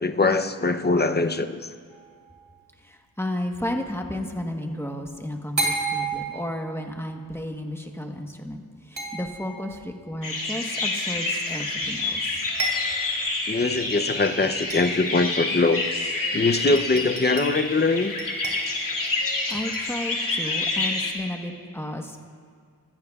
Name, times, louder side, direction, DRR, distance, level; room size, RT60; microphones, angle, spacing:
voice 1, 0.0-1.7 13.5-16.0 16.3-18.1, left 3 dB, 30° left, 8 dB, 0.7 m, -22 dB
sound 1, 1.9-2.4 5.6-6.9 9.0-9.7 11.8-11.9 12.2-12.3 12.6-13.2 13.8-13.9 14.7-15.2 16.1-16.2 16.5-17.7 18.2-19.1 19.5-20.0, right 2 dB, 55° right, 3.7 m, -32 dB
voice 2, 2.8-12.4 19.1-19.2 19.5-22.2, left 1 dB, 5° left, 3 dB, 1.2 m, -33 dB
sound 2, 10.2-21.1, left 3 dB, 65° left, 2.5 m, -28 dB
25.0 x 15.0 x 2.4 m, 2.1 s
wide cardioid pair, 90°, 35 cm